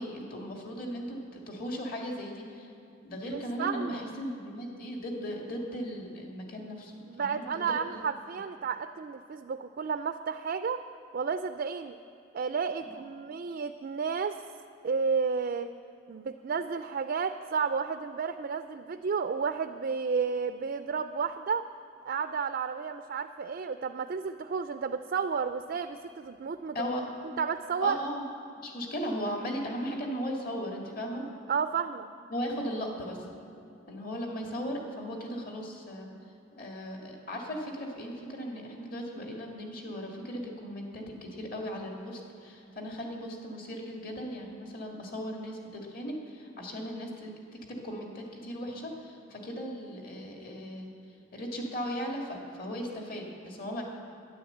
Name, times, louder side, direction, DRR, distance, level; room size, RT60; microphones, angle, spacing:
voice 1, 0.0-2.7 3.0-8.0 12.9-13.0 26.7-27.0 27.8-28.2 28.6-31.2 32.3-33.2 33.9-36.1 36.5-47.3 47.7-50.9 51.3-53.8, equal, 50° left, 0 dB, 1.9 m, -37 dB
voice 2, 3.2-4.0 7.1-10.8 11.1-12.0 12.3-14.4 14.8-15.7 16.1-21.7 22.1-26.9 27.4-28.0 31.5-32.1, right 5 dB, 50° right, 10 dB, 0.4 m, -32 dB
10.5 x 10.5 x 7.9 m, 2.7 s
head